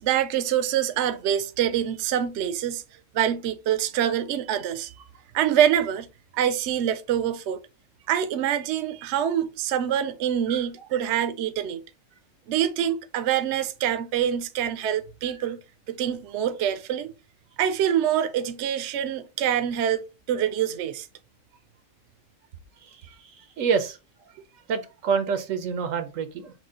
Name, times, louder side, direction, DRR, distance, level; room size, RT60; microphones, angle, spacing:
voice 1, 0.0-2.8 3.1-4.9 5.3-6.1 6.3-7.6 8.1-11.8 12.5-15.6 15.9-17.1 17.6-21.1, right 10 dB, 65° right, 0.8 m, -25 dB
voice 2, 23.6-24.0 24.7-26.5, right 6 dB, 85° right, 1.1 m, -27 dB
6.5 x 2.2 x 3.7 m
omnidirectional pair, 1.3 m